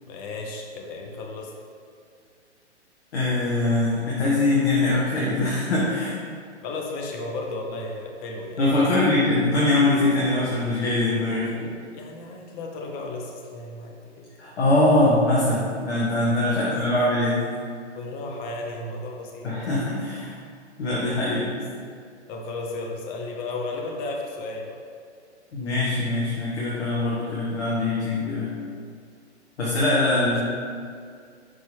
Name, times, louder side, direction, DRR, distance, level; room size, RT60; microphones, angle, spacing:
voice 1, 0.1-1.5 6.6-9.1 11.3-14.3 16.5-17.0 17.9-19.5 22.3-24.8 30.1-30.4, left 2 dB, 25° left, 1 dB, 0.7 m, -34 dB
voice 2, 3.1-6.1 8.6-11.5 14.4-17.4 19.4-20.3 20.8-21.5 25.5-28.5 29.6-30.4, left 2 dB, 70° left, -7 dB, 1.5 m, -22 dB
6.1 x 5.0 x 3.5 m, 2.3 s
hypercardioid pair, 125°, 35 cm